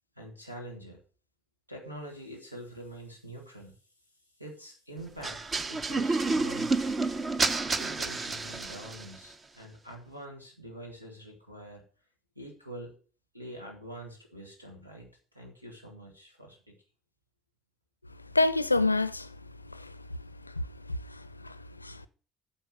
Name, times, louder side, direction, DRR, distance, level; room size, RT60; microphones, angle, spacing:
voice 1, 0.2-1.0 1.7-3.7 4.4-5.4 5.7-6.7 7.8-11.8 12.4-12.9 13.3-15.1 15.3-16.7, right 1 dB, 90° right, 2.1 m, -45 dB
sound 1, 5.2-9.2, right 3 dB, 30° right, 0.8 m, -29 dB
voice 2, 18.3-19.4 19.7-19.9 20.6-22.1, left 2 dB, 85° left, 0.4 m, -28 dB
9.2 x 6.8 x 6.3 m
figure-of-eight pair, 55°, 0 cm